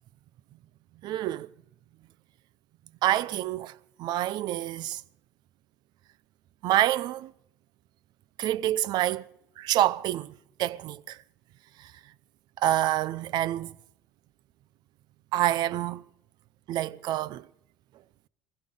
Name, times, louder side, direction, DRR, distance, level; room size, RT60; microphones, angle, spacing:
voice 1, 1.0-1.5 3.0-3.7 4.0-5.0 6.6-7.3 8.4-9.3 9.6-10.3 10.6-11.2 12.6-13.7 15.3-16.0 16.7-17.4, right 13 dB, 60° right, 0.6 m, -27 dB
21.0 x 16.0 x 3.8 m
supercardioid pair, 90°, 8 cm